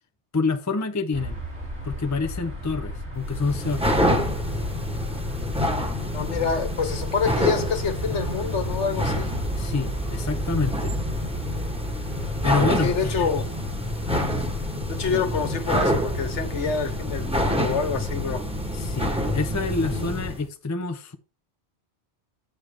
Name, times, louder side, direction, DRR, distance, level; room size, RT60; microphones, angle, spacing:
voice 1, 0.3-1.4 1.8-3.9 9.6-10.9 12.4-13.1 18.7-21.2, left 4 dB, 25° left, 0.4 m, -27 dB
sound 1, 1.1-20.3, equal, 75° right, 3.4 m, -35 dB
sound 2, 3.2-20.4, left 1 dB, 5° right, 1.2 m, -27 dB
voice 2, 6.1-9.3 12.8-13.4 14.9-18.4, left 5 dB, 90° left, 1.5 m, -27 dB
7.8 x 6.8 x 3.4 m
omnidirectional pair, 1.2 m